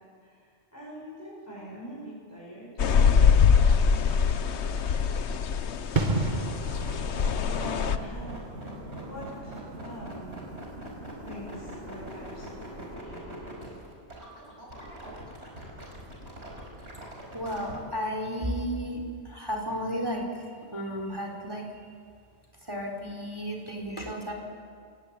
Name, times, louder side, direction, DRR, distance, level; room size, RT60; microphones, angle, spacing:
voice 1, 0.2-5.4 6.0-6.5 7.5-8.4 9.0-10.6 11.2-13.7, equal, 15° left, -8 dB, 8.0 m, -44 dB
sound 1, 2.8-8.0, left 6 dB, 80° left, 1.2 m, -23 dB
sound 2, 5.9-12.4 12.7-12.9, right 3 dB, 45° right, 1.6 m, -34 dB
sound 3, 6.1-17.8, right 1 dB, 75° right, 5.6 m, -42 dB
voice 2, 17.3-19.0 19.3-20.2 20.7-21.8 22.7-24.3, equal, 20° right, 1 dB, 4.1 m, -33 dB
28.5 x 18.0 x 8.7 m, 2.1 s
omnidirectional pair, 1.1 m